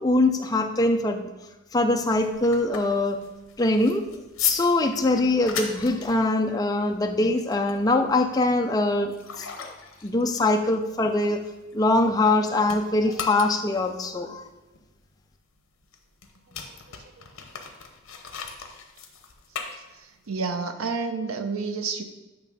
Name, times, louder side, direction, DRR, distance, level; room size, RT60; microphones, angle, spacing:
voice 1, 0.0-1.3 1.7-3.2 3.6-4.0 4.4-9.7 10.0-11.4 11.7-14.4, left 2 dB, 20° left, 4 dB, 0.4 m, -23 dB
sound 1, 1.9-12.4 12.6-20.3, left 7 dB, 70° left, 0.9 m, -37 dB
voice 2, 19.7-22.0, right 4 dB, 90° right, 7 dB, 0.7 m, -30 dB
8.7 x 3.2 x 5.3 m, 1.1 s
head